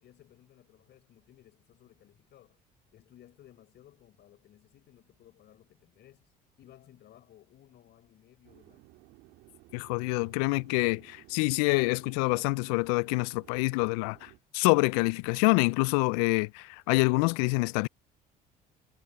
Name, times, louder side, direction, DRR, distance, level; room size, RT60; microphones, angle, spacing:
voice 1, 0.0-2.6 2.9-6.3 6.6-8.9, left 12 dB, 60° left, 4.8 m, -58 dB
sound 1, 8.4-14.4, right 21 dB, 80° right, 2.8 m, -57 dB
voice 2, 9.7-17.9, left 28 dB, 85° left, 0.4 m, -26 dB
hypercardioid pair, 65°, 20 cm